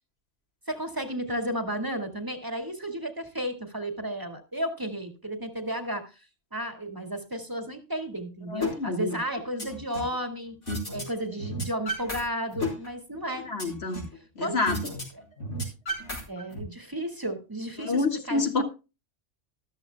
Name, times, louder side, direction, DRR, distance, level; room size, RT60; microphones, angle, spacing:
voice 1, 0.7-6.1 6.5-10.6 10.9-13.5 14.4-14.6 16.3-18.6, right 1 dB, 15° right, 6 dB, 2.0 m, -33 dB
voice 2, 8.5-9.2 13.5-14.0 14.4-14.8 17.8-18.6, left 3 dB, 60° left, 5 dB, 2.2 m, -28 dB
sound 1, 8.6-8.7 9.1-10.2 10.7-11.0 11.3-12.2 12.5-14.2 14.7-15.0 15.3-16.6, left 1 dB, 85° left, 5.1 m, -33 dB
13.5 x 13.5 x 2.2 m, 0.30 s
omnidirectional pair, 1.2 m